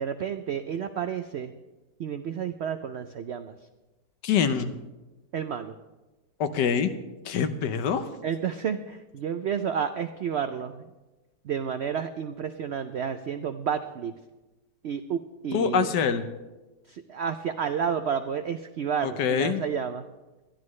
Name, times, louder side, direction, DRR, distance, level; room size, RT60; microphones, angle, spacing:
voice 1, 0.0-1.5 2.0-3.5 5.3-5.7 8.2-10.8 11.4-14.1 14.8-15.9 16.9-20.1, right 7 dB, 90° right, 9 dB, 0.5 m, -30 dB
voice 2, 4.2-4.7 6.4-6.9 7.2-8.1 15.5-16.2 19.0-19.6, left 7 dB, 85° left, 10 dB, 1.5 m, -25 dB
20.5 x 13.0 x 3.2 m, 1.1 s
omnidirectional pair, 1.8 m